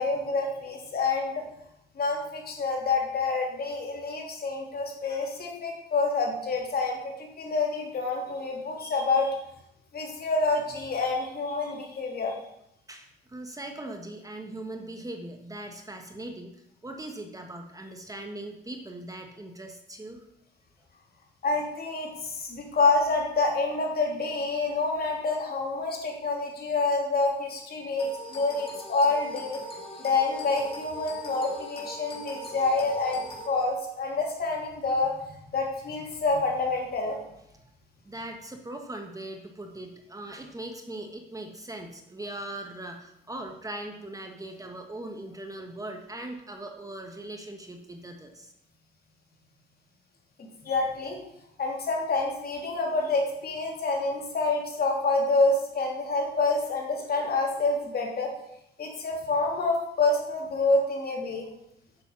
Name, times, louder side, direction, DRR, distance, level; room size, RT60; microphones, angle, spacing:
voice 1, 0.0-1.4 2.0-9.4 9.9-12.4 21.4-29.6 30.0-35.1 35.5-37.2 50.6-51.2 51.6-58.3 58.8-61.5, left 3 dB, 50° left, 0 dB, 3.0 m, -27 dB
voice 2, 12.9-16.5 16.8-20.2 38.0-48.5, right 1 dB, 15° right, 4 dB, 1.3 m, -40 dB
sound 1, 28.0-33.5, equal, 30° left, 2.4 m, -41 dB
8.8 x 6.9 x 5.8 m, 0.79 s
cardioid pair, 90°, 20 cm